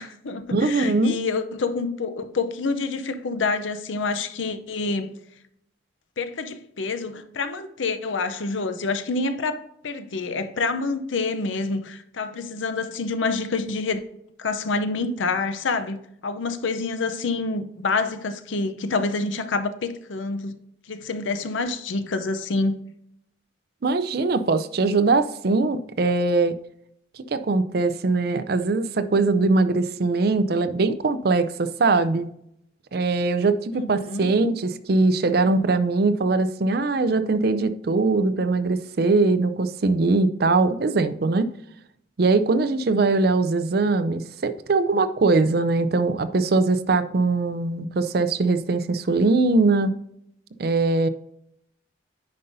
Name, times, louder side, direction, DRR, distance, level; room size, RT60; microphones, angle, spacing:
voice 1, 0.0-5.1 6.2-14.0 14.4-20.6 20.9-22.8 33.8-34.3, left 3 dB, 85° left, 0.6 m, -27 dB
voice 2, 0.5-1.2 23.8-26.6 27.3-32.3 32.9-41.5 42.2-50.0 50.6-51.1, right 3 dB, 55° right, 0.5 m, -21 dB
9.5 x 5.4 x 2.6 m
head